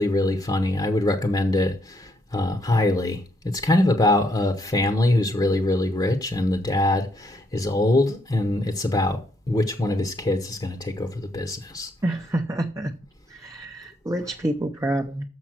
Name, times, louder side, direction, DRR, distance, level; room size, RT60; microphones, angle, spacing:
voice 1, 0.0-3.2 3.5-9.2 9.5-11.9, left 1 dB, 20° left, 0.9 m, -23 dB
voice 2, 12.0-12.9 13.3-15.3, right 1 dB, 15° right, 0.6 m, -27 dB
6.9 x 6.2 x 7.3 m
head